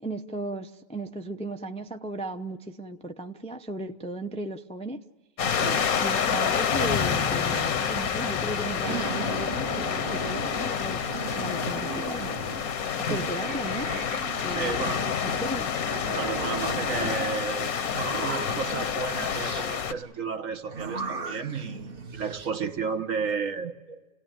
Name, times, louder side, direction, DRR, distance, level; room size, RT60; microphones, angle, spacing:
voice 1, 0.0-5.0 6.0-12.3 13.0-14.0 14.4-15.7, right 2 dB, 5° left, 0.5 m, -36 dB
sound 1, 5.4-19.9, left 7 dB, 75° left, 1.4 m, -28 dB
voice 2, 5.5-5.9 13.1-13.3 14.4-15.4 16.1-24.0, right 5 dB, 60° right, 1.5 m, -33 dB
sound 2, 6.7-16.5, left 5 dB, 35° left, 0.8 m, -40 dB
sound 3, 8.8-10.7 11.0-12.7 13.1-15.1 15.6-17.4 17.9-19.7 20.7-22.5, right 4 dB, 40° right, 1.3 m, -37 dB
28.5 x 18.0 x 9.1 m
omnidirectional pair, 1.5 m